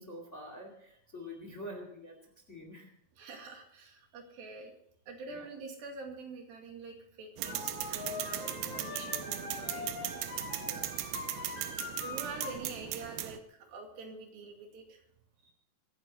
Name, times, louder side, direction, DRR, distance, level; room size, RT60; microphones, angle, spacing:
voice 1, 0.0-2.2 2.5-2.9 5.3-5.5 8.6-8.9 10.6-10.9 11.9-12.1, left 1 dB, 25° left, 4 dB, 2.0 m, -46 dB
voice 2, 3.2-4.7 5.1-10.2 11.8-15.0 15.5-15.6, right 3 dB, 70° right, 2 dB, 4.0 m, -46 dB
sound 1, 7.4-12.6, left 4 dB, 60° left, 3.6 m, -42 dB
sound 2, 7.4-13.4, right 14 dB, 85° right, 2.7 m, -38 dB
24.0 x 11.0 x 4.0 m, 0.72 s
omnidirectional pair, 4.5 m